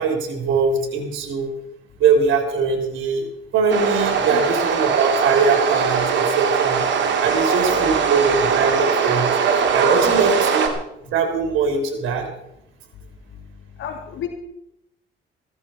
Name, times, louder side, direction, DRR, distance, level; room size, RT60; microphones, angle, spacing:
voice 1, 0.0-1.5 2.0-3.3 3.5-6.8 7.2-9.3 9.7-10.7 11.0-12.3, right 5 dB, 85° right, 4 dB, 3.4 m, -21 dB
sound 1, 3.7-10.7, right 6 dB, 65° right, 2.6 m, -20 dB
voice 2, 7.2-7.9 13.3-13.5 13.8-14.3, left 8 dB, 80° left, 4 dB, 2.5 m, -32 dB
16.0 x 13.5 x 4.5 m, 0.83 s
cardioid pair, 90°, 20 cm